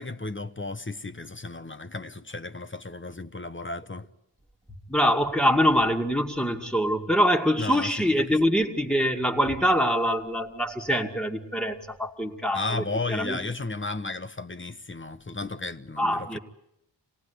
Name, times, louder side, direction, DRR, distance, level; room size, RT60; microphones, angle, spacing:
voice 1, 0.0-4.1 7.6-8.4 12.5-16.4, left 3 dB, 25° left, 1.1 m, -34 dB
voice 2, 4.9-12.8 13.1-13.4 16.0-16.4, equal, ahead, 2.3 m, -24 dB
26.5 x 18.0 x 9.9 m
wide cardioid pair, 75°, 44 cm